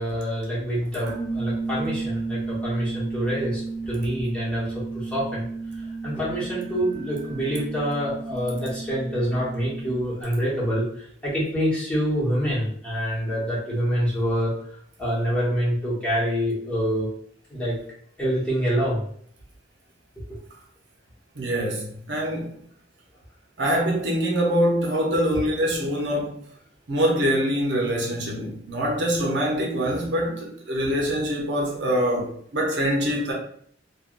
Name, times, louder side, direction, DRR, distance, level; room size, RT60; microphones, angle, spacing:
voice 1, 0.0-5.5 5.8-14.5 15.0-17.1 17.5-17.8 18.2-19.0 20.2-20.3 25.3-25.5, equal, 5° left, 1.1 m, -26 dB
sound 1, 1.0-10.2, right 3 dB, 80° left, 1.2 m, -33 dB
voice 2, 21.3-22.6 23.6-26.3 26.9-33.3, equal, 70° right, 0.7 m, -24 dB
3.3 x 2.2 x 2.5 m
head